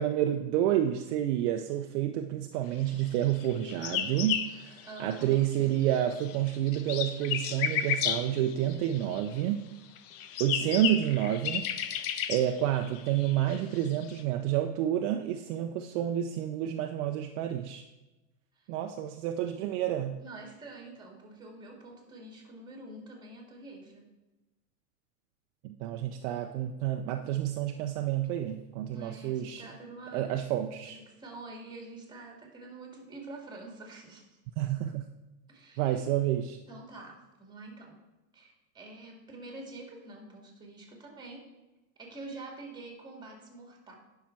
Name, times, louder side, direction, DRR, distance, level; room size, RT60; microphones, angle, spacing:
voice 1, 0.0-9.6 10.4-12.0 12.3-17.8 18.7-20.2 25.6-29.6 30.1-31.0 34.6-35.0 35.8-36.6, right 12 dB, 50° right, 5 dB, 0.6 m, -29 dB
sound 1, 3.4-5.6 5.8-9.4 10.0-14.2, left 9 dB, 30° left, 0.5 m, -33 dB
voice 2, 4.9-5.4 10.6-10.9 18.5-18.7 20.2-24.0 28.9-30.3 30.8-34.4 35.5-36.1 36.7-38.0 38.3-41.5 42.0-43.9, right 2 dB, 10° right, 1 dB, 2.1 m, -46 dB
10.0 x 5.9 x 4.5 m, 1.1 s
supercardioid pair, 130°, 47 cm